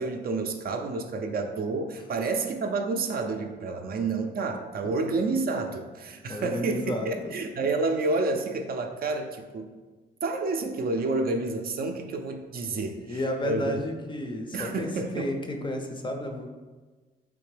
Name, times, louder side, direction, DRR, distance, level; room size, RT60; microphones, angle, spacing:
voice 1, 0.0-9.7 10.2-13.8 14.5-15.3, right 3 dB, 50° right, 5 dB, 0.4 m, -29 dB
voice 2, 6.3-7.4 12.7-16.5, left 1 dB, 25° left, 4 dB, 0.5 m, -32 dB
3.7 x 2.9 x 3.2 m, 1.3 s
cardioid pair, 90°, 20 cm